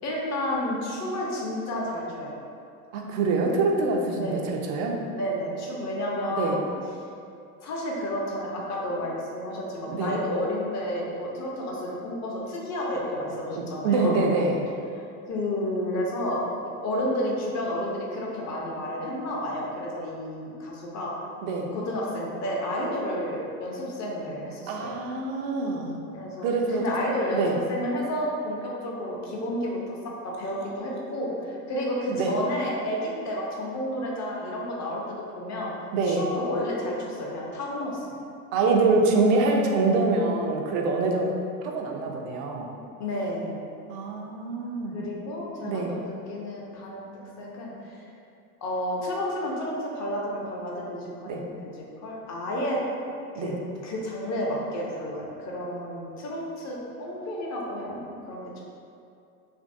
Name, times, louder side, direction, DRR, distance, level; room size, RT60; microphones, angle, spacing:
voice 1, 0.0-2.3 4.1-4.5 5.1-6.7 7.6-14.3 14.9-16.4 16.8-21.1 21.7-25.0 26.1-30.0 30.2-35.7 36.0-38.1 43.0-43.6 44.9-47.1 47.4-48.1 48.6-51.7 52.0-52.8 53.3-53.5 53.8-58.6, left 1 dB, 40° left, -3 dB, 0.7 m, -31 dB
voice 2, 2.9-5.0 6.3-6.6 9.9-10.1 13.6-14.6 21.4-21.7 24.7-26.0 26.4-26.8 27.3-27.6 32.1-32.3 35.9-36.2 38.5-41.3 41.6-42.7 43.9-45.0 45.6-46.0 51.2-51.4 53.4-53.6, right 3 dB, 60° right, 1 dB, 0.6 m, -25 dB
3.0 x 2.6 x 2.5 m, 2.5 s
hypercardioid pair, 85°, 43 cm